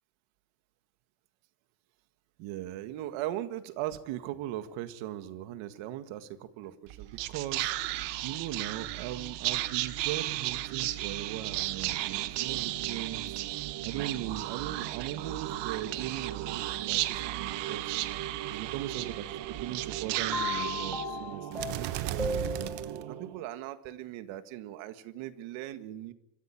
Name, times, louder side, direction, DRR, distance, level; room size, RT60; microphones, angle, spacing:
voice 1, 2.4-7.7 8.2-13.4 13.8-17.9 18.5-22.7 23.1-26.1, right 13 dB, 85° right, 10 dB, 1.9 m, -39 dB
Whispering, 6.9-23.4, right 15 dB, 60° right, 1.3 m, -34 dB
sound 1, 20.3-23.2, left 3 dB, ahead, 5.3 m, -36 dB
25.0 x 15.0 x 9.0 m, 0.88 s
cardioid pair, 170°, 47 cm